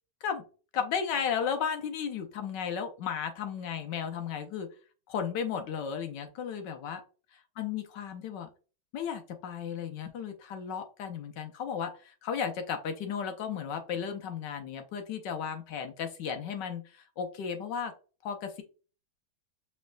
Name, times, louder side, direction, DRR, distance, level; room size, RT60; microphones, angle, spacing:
voice 1, 0.7-4.7 5.1-7.0 7.6-8.5 8.9-17.9 18.2-18.6, left 7 dB, 70° left, 6 dB, 1.1 m, -34 dB
5.5 x 3.4 x 2.2 m, 0.35 s
omnidirectional pair, 2.4 m